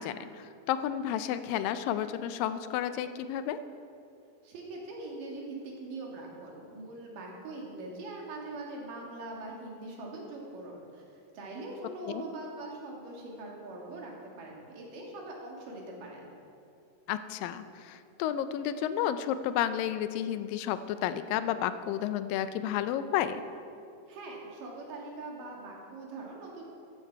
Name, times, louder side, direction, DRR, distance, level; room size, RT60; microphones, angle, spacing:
voice 1, 0.0-3.6 12.1-12.2 17.1-23.4, left 10 dB, 80° left, 12 dB, 2.2 m, -31 dB
voice 2, 4.4-16.3 24.1-26.6, right 2 dB, 65° right, -1 dB, 3.4 m, -42 dB
14.0 x 11.5 x 4.6 m, 2.5 s
omnidirectional pair, 4.2 m